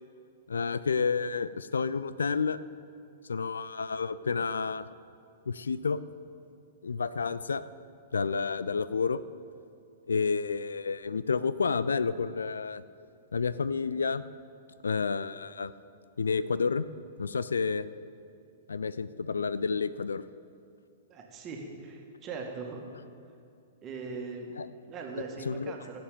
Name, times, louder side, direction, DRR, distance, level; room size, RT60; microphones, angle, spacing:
voice 1, 0.5-2.6 3.3-4.9 5.5-6.0 6.8-7.6 8.1-9.2 10.1-12.8 13.3-14.2 14.8-15.7 16.2-16.9 17.2-17.9 18.7-20.2 24.6-24.7 25.5-25.7, left 5 dB, 70° left, 15 dB, 0.4 m, -30 dB
voice 2, 21.1-22.8 23.8-24.5 24.8-26.0, right 4 dB, 25° right, 1 dB, 2.1 m, -40 dB
15.5 x 7.8 x 6.9 m, 2.4 s
figure-of-eight pair, 105°, 0 cm